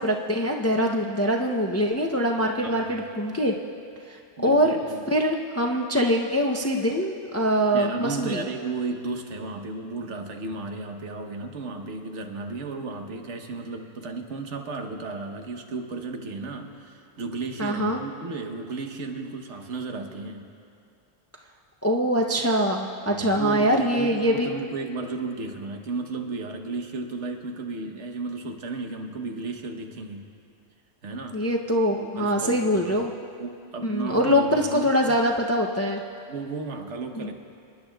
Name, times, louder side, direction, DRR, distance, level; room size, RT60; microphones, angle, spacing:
voice 1, 0.0-3.5 4.1-4.8 5.1-8.5 17.6-18.0 21.8-24.5 31.3-33.1 33.8-36.0 37.1-37.3, equal, 25° left, 1 dB, 0.3 m, -23 dB
voice 2, 2.6-3.0 4.4-5.1 7.7-20.5 23.1-30.3 31.0-31.4 32.0-33.0 33.4-35.2 36.3-37.3, right 3 dB, 90° right, 4 dB, 1.3 m, -34 dB
27.0 x 10.5 x 2.3 m, 2.4 s
omnidirectional pair, 1.2 m